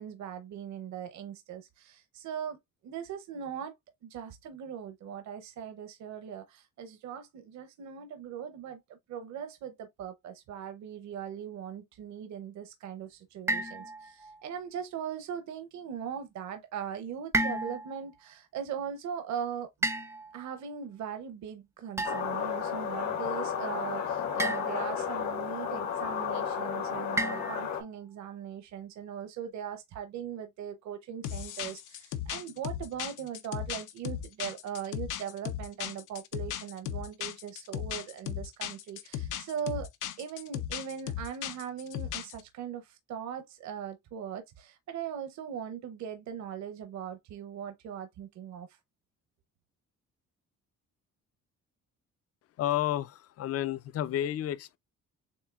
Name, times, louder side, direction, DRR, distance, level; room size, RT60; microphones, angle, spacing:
voice 1, 0.0-2.6 2.8-3.7 4.0-19.9 20.3-39.9 40.2-48.8, right 8 dB, 65° right, 0.7 m, -40 dB
sound 1, 13.5-14.4 17.3-18.0 19.8-20.6 22.0-22.5 24.4-25.0 27.2-27.9, right 2 dB, 10° right, 0.4 m, -32 dB
sound 2, 22.0-27.8, left 7 dB, 70° left, 1.3 m, -33 dB
sound 3, 31.2-42.4, left 10 dB, 85° left, 0.8 m, -36 dB
voice 2, 52.6-54.8, left 12 dB, 55° left, 0.5 m, -31 dB
6.9 x 2.6 x 2.3 m
cardioid pair, 155°, 30 cm